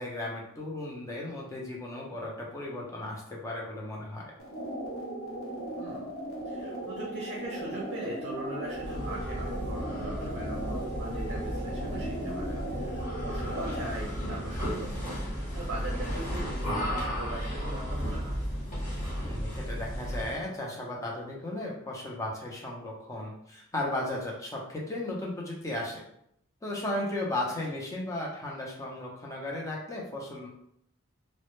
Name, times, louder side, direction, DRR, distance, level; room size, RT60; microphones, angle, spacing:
voice 1, 0.0-4.3 19.2-26.0 26.6-30.5, left 1 dB, 15° left, -3 dB, 0.5 m, -35 dB
sound 1, 4.4-14.0, right 1 dB, 85° left, 0.7 m, -37 dB
voice 2, 5.8-6.1 6.5-18.4, right 2 dB, 55° right, -3 dB, 0.5 m, -40 dB
sound 2, 8.7-20.5, equal, 35° left, 0.8 m, -34 dB
2.0 x 2.0 x 2.9 m, 0.73 s
head